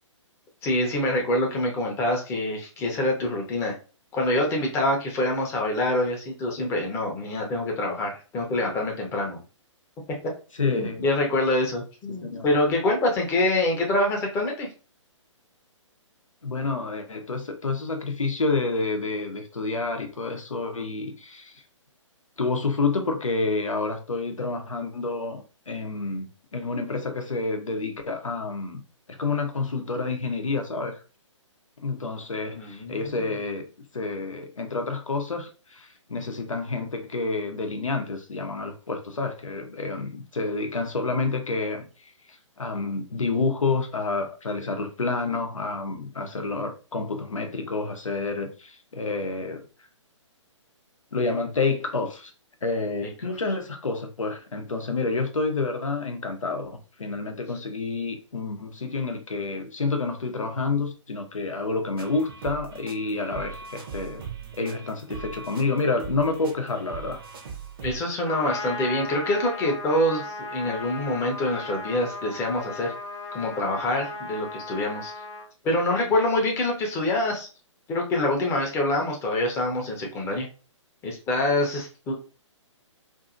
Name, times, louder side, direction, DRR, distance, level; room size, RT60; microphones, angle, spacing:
voice 1, 0.6-3.7 4.1-9.4 10.7-14.7 32.5-33.2 67.8-72.9 73.3-75.1 75.6-77.5 77.9-80.5 81.0-82.1, left 1 dB, 15° left, 0 dB, 0.7 m, -25 dB
voice 2, 10.6-11.0 12.1-12.5 16.4-21.6 22.4-28.8 29.1-30.9 31.8-33.6 33.9-49.6 51.1-52.3 52.6-64.2 64.5-67.2, left 3 dB, 90° left, 5 dB, 0.7 m, -29 dB
sound 1, 62.0-68.0, right 6 dB, 50° right, 0.7 m, -40 dB
Trumpet, 68.2-75.5, left 2 dB, 60° left, 0.8 m, -36 dB
2.7 x 2.5 x 2.5 m, 0.34 s
figure-of-eight pair, 135°, 16 cm